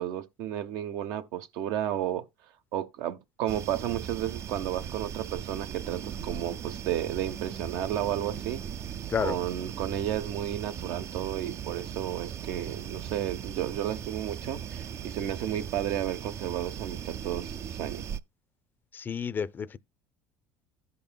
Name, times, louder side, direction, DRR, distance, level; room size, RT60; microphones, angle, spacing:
voice 1, 0.0-2.2 2.7-8.6 9.2-18.0, right 11 dB, 70° right, 0.7 m, -32 dB
sound 1, 3.5-18.2, right 8 dB, 45° right, 0.4 m, -38 dB
voice 2, 18.9-19.8, left 6 dB, 30° left, 0.4 m, -30 dB
15.5 x 5.4 x 2.2 m
supercardioid pair, 85°, 7 cm